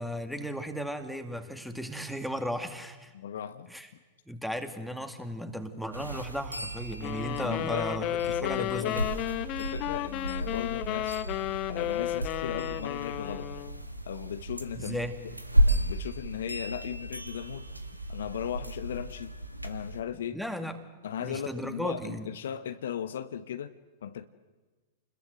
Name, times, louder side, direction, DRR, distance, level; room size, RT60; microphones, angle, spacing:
voice 1, 0.0-3.1 3.7-3.9 4.3-9.0 14.7-15.2 20.3-20.8 21.2-22.3, equal, ahead, 7 dB, 2.3 m, -35 dB
voice 2, 3.1-3.7 7.4-9.1 9.6-11.2 11.7-13.5 14.0-15.0 15.7-17.7 18.1-19.3 19.6-20.4 21.0-23.7 24.0-24.2, left 9 dB, 60° left, 11 dB, 1.0 m, -37 dB
sound 1, 5.9-20.0, right 1 dB, 85° right, 1.8 m, -33 dB
sound 2, 7.0-13.8, left 14 dB, 35° left, 1.0 m, -33 dB
29.5 x 21.0 x 7.9 m, 1.3 s
figure-of-eight pair, 100°, 0 cm